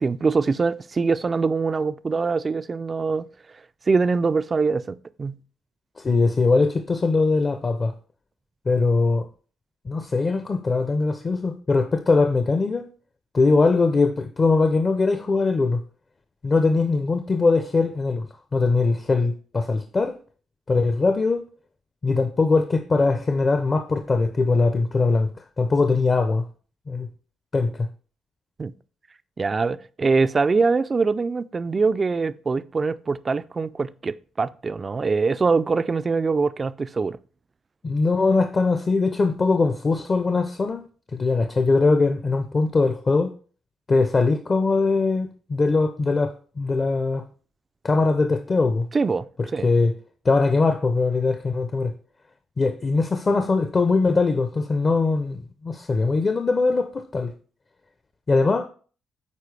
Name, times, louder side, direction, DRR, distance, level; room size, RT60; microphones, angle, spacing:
voice 1, 0.0-3.3 3.9-5.4 28.6-28.7 29.4-37.2 48.9-49.7, right 4 dB, 30° right, 0.3 m, -23 dB
voice 2, 6.0-7.9 8.7-9.3 9.8-12.9 13.3-15.8 16.4-18.3 18.5-20.2 20.7-21.5 22.0-25.3 25.6-26.5 26.9-27.1 27.5-27.9 37.8-40.8 41.1-43.3 43.9-47.3 47.8-48.9 49.4-49.9 50.2-51.9 52.6-57.3 58.3-58.7, left 3 dB, 35° left, 0.6 m, -21 dB
8.3 x 4.5 x 3.3 m
cardioid pair, 90°, 0 cm